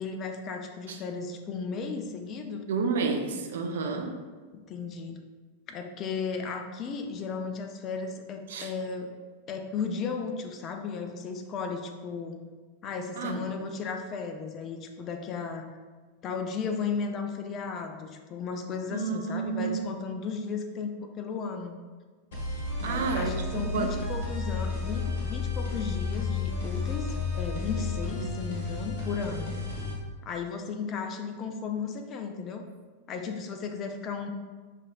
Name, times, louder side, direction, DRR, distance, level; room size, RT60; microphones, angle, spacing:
voice 1, 0.0-2.7 4.7-5.2 5.7-9.1 9.5-12.4 12.8-15.7 16.2-21.8 22.8-30.0 30.3-32.7 33.1-34.3, left 5 dB, 30° left, 5 dB, 0.4 m, -35 dB
voice 2, 2.7-4.2 8.5-8.7 13.2-13.7 18.9-19.9 22.8-23.9 28.2-28.4, right 5 dB, 60° right, 4 dB, 0.4 m, -31 dB
sound 1, 22.3-29.9, left 3 dB, 55° left, 0.9 m, -32 dB
5.5 x 2.5 x 2.4 m, 1.4 s
figure-of-eight pair, 90°, 0 cm